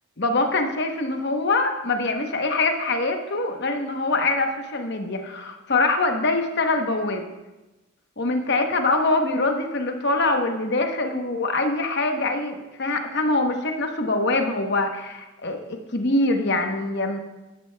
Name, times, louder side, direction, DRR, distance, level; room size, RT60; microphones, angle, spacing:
voice 1, 0.2-7.2 8.2-17.2, left 2 dB, 50° left, 5 dB, 0.9 m, -24 dB
13.0 x 11.0 x 2.2 m, 1.1 s
head